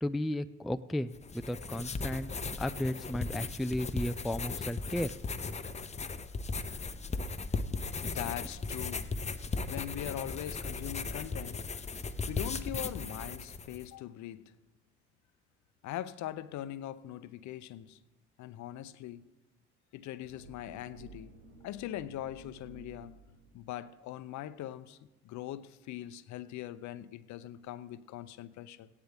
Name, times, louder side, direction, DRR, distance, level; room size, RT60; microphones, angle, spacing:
voice 1, 0.0-2.3 2.6-5.1, left 1 dB, ahead, 0.3 m, -34 dB
sound 1, 1.1-13.9, left 4 dB, 20° left, 0.7 m, -37 dB
voice 2, 8.0-9.1 9.6-11.6 12.3-14.6 15.8-18.0 18.4-19.3 19.9-21.3 21.6-23.2 23.5-25.0 25.2-28.9, left 12 dB, 55° left, 0.7 m, -41 dB
sound 2, 20.2-23.7, right 2 dB, 90° right, 1.3 m, -53 dB
16.0 x 9.8 x 3.5 m
hypercardioid pair, 60°, 34 cm